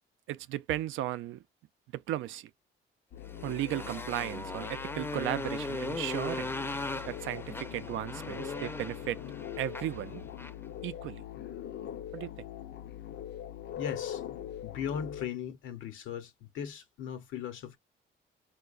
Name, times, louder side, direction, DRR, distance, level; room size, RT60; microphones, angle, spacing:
voice 1, 0.3-1.4 1.9-2.5 3.4-6.5 7.1-9.2 9.6-10.2 10.8-11.2 12.1-12.5, right 13 dB, 85° right, 0.4 m, -35 dB
sound 1, 3.1-15.3, left 11 dB, 60° left, 0.5 m, -42 dB
Motorcycle, 3.2-10.6, left 2 dB, 10° left, 0.5 m, -39 dB
voice 2, 13.8-14.2 14.6-17.8, left 8 dB, 80° left, 0.8 m, -38 dB
4.5 x 2.2 x 2.4 m
cardioid pair, 90°, 20 cm